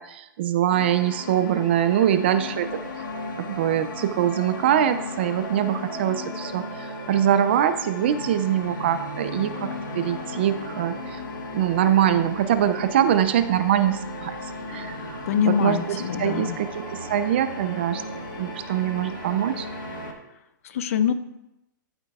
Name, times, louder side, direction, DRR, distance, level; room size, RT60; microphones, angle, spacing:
voice 1, 0.0-3.0 3.4-11.2 11.5-14.4 14.7-18.0 18.4-19.7, right 10 dB, 30° right, 12 dB, 0.3 m, -23 dB
sound 1, 0.7-20.1, left 5 dB, 65° left, 1.2 m, -37 dB
sound 2, 1.7-20.1, right 5 dB, 55° right, 2.7 m, -40 dB
voice 2, 15.3-16.6 20.6-21.1, left 8 dB, 45° left, 12 dB, 0.6 m, -24 dB
13.0 x 7.9 x 2.4 m, 0.90 s
hypercardioid pair, 170°, 11 cm